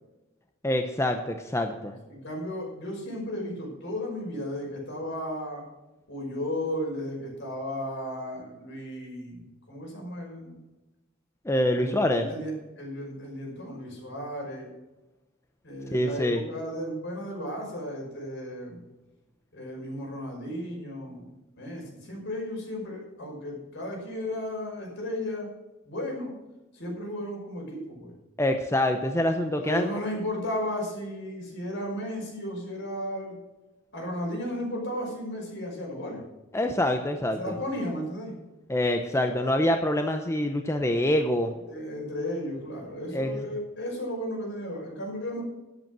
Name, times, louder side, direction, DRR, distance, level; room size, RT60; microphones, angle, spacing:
voice 1, 0.6-1.9 11.4-12.3 15.9-16.4 28.4-29.9 36.5-37.5 38.7-41.5 43.1-43.3, left 1 dB, 15° left, 5 dB, 0.8 m, -25 dB
voice 2, 2.0-5.6 6.1-10.6 11.7-14.7 15.6-18.8 19.5-21.3 21.6-25.5 25.8-26.3 26.7-28.1 29.6-33.4 33.9-36.2 37.3-38.3 41.7-45.4, left 1 dB, 60° left, 0 dB, 5.6 m, -34 dB
12.0 x 9.2 x 6.1 m, 1.1 s
head